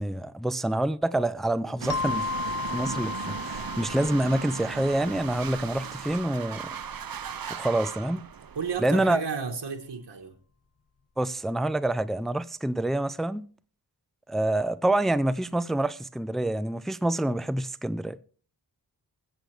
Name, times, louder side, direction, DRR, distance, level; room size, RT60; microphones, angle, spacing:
voice 1, 0.0-2.3 2.7-6.7 7.5-8.2 8.8-9.2 11.2-13.5 14.3-18.2, right 1 dB, ahead, 0.4 m, -27 dB
sound 1, 1.8-8.8, right 7 dB, 55° right, 0.7 m, -37 dB
sound 2, 1.9-6.3, left 5 dB, 40° left, 0.7 m, -35 dB
voice 2, 8.5-10.4, right 5 dB, 85° right, 1.4 m, -32 dB
21.0 x 8.0 x 3.3 m
wide cardioid pair, 60°, 41 cm